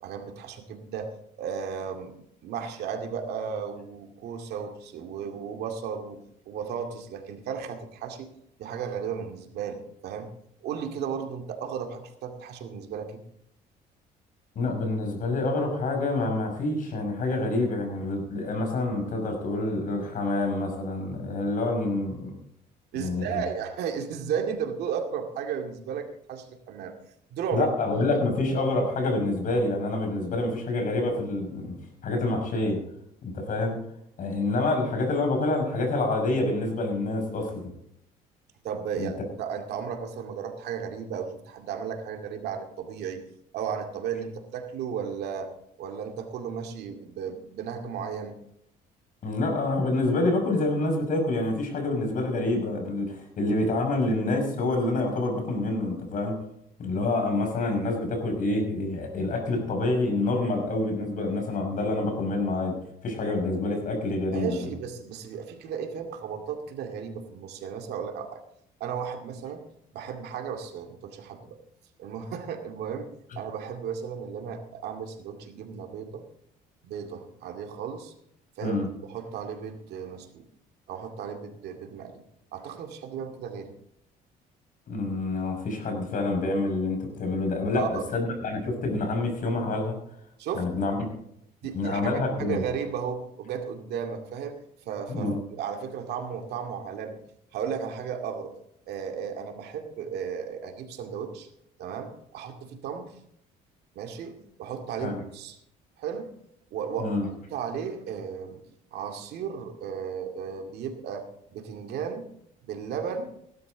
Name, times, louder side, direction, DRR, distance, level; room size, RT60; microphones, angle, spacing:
voice 1, 0.0-8.3 8.6-10.3 10.6-13.2 22.9-26.9 27.3-27.7 38.6-43.2 43.5-45.5 45.8-48.4 64.3-68.4 68.8-69.6 69.9-71.6 72.0-73.1 73.4-76.2 76.8-78.1 78.6-78.8 79.0-80.5 80.9-82.2 82.5-83.7 87.8-88.1 90.4-90.7 91.6-94.6 94.9-97.2 97.5-98.6 98.9-101.5 101.8-103.1 104.0-105.6 106.0-106.4 106.7-107.2 107.5-108.6 108.9-112.3 112.6-113.3, right 7 dB, 75° right, 4 dB, 2.3 m, -34 dB
voice 2, 14.5-22.3 23.0-23.4 27.5-31.8 32.0-32.8 33.2-33.8 34.2-37.7 39.0-39.1 49.2-56.4 56.8-62.7 63.0-64.7 78.6-78.9 84.9-90.0 90.5-91.0 91.7-92.6 95.1-95.4 105.0-105.2 107.0-107.2, left 2 dB, 50° left, 3 dB, 6.1 m, -27 dB
17.0 x 12.0 x 4.0 m, 0.73 s
cardioid pair, 110°, 17 cm